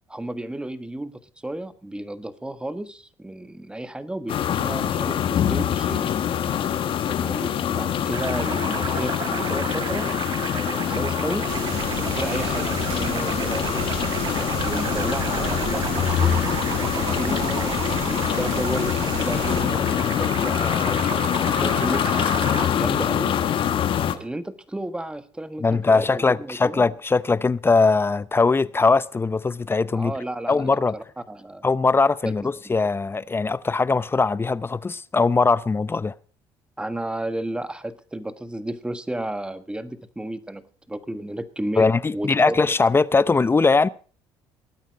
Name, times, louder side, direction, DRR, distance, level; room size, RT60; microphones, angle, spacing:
voice 1, 0.1-6.2 7.1-10.2 10.5-11.5 12.0-13.9 14.6-16.4 17.0-22.3 22.7-23.4 24.1-26.8 29.9-31.6 32.2-32.7 36.8-40.6 40.9-42.6, right 1 dB, 10° right, 1.5 m, -33 dB
sound 1, 4.3-24.1, left 9 dB, 55° left, 1.6 m, -24 dB
sound 2, 8.1-22.7, right 7 dB, 40° right, 0.9 m, -33 dB
sound 3, 11.5-19.6, right 9 dB, 85° right, 2.6 m, -33 dB
voice 2, 25.6-30.1 30.5-30.9 31.6-36.1 41.8-43.9, left 4 dB, 20° left, 0.7 m, -20 dB
19.5 x 9.1 x 5.2 m
supercardioid pair, 80°, 10 cm